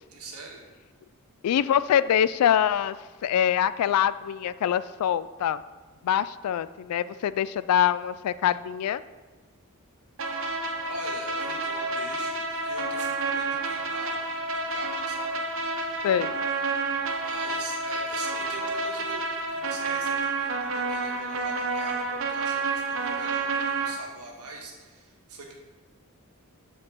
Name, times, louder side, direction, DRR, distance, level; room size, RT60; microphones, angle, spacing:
voice 1, 0.1-0.6 10.6-14.1 14.5-15.4 17.2-19.2 19.5-25.5, right 3 dB, 85° right, -1 dB, 1.6 m, -43 dB
voice 2, 1.4-3.0 3.2-5.6 6.0-9.0 16.0-16.4, left 9 dB, 90° left, 17 dB, 0.3 m, -24 dB
sound 1, 10.2-23.9, right 3 dB, 60° right, 0.8 m, -29 dB
5.9 x 4.6 x 6.4 m, 1.3 s
head